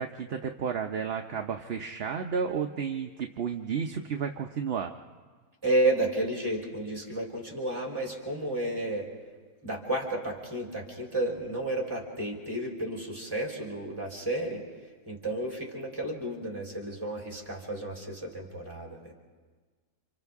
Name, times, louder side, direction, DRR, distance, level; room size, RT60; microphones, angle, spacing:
voice 1, 0.0-4.9, right 6 dB, 50° right, 4 dB, 0.8 m, -32 dB
voice 2, 5.6-9.1 9.6-14.6 15.1-19.1, right 1 dB, 15° right, -2 dB, 3.8 m, -31 dB
30.0 x 27.0 x 3.6 m, 1.4 s
omnidirectional pair, 1.6 m